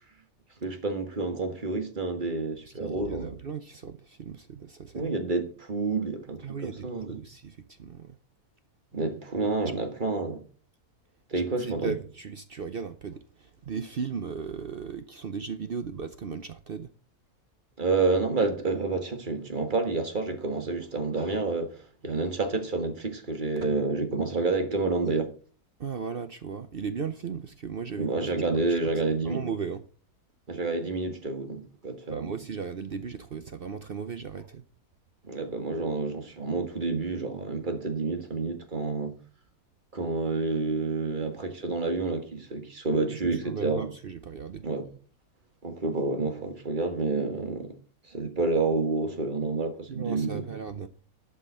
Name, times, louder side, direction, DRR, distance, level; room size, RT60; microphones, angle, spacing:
voice 1, 0.6-3.4 4.9-7.2 8.9-10.4 11.3-11.9 17.8-25.3 28.0-29.4 30.5-32.3 35.2-39.1 39.9-43.9 44.6-44.9 45.6-47.8 48.1-50.4, right 3 dB, 35° right, 1.7 m, -29 dB
voice 2, 2.7-5.1 6.4-8.2 11.3-16.9 25.8-28.9 29.2-29.8 32.1-34.6 42.9-44.7 49.9-50.9, right 6 dB, 50° right, 0.7 m, -37 dB
11.5 x 5.5 x 6.7 m
omnidirectional pair, 1.6 m